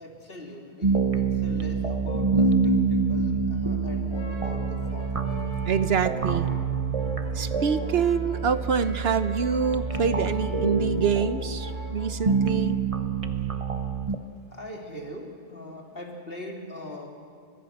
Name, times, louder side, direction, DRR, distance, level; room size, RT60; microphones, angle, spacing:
voice 1, 0.0-5.1 14.5-17.1, left 1 dB, 65° left, 0 dB, 3.5 m, -41 dB
sound 1, 0.8-14.2, right 4 dB, 35° right, 1.1 m, -27 dB
Brass instrument, 4.1-12.7, equal, 30° left, 4.6 m, -42 dB
voice 2, 5.7-6.6 7.3-12.8, right 6 dB, 75° right, 12 dB, 1.1 m, -26 dB
29.5 x 24.0 x 6.5 m, 2.1 s
omnidirectional pair, 1.1 m